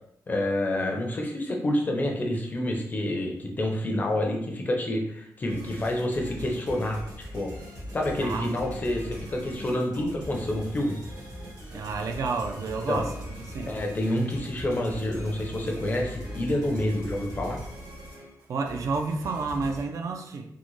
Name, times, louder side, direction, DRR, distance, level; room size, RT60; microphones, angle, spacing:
voice 1, 0.3-7.5 7.9-11.0 12.9-13.1 13.7-17.6, left 1 dB, 25° left, 1 dB, 0.5 m, -28 dB
sound 1, 5.5-19.8, equal, 75° right, 1.3 m, -40 dB
voice 2, 8.2-8.8 11.7-13.7 18.5-20.5, right 4 dB, 55° right, 5 dB, 0.3 m, -30 dB
3.7 x 2.1 x 3.0 m, 0.75 s
wide cardioid pair, 175°, 7 cm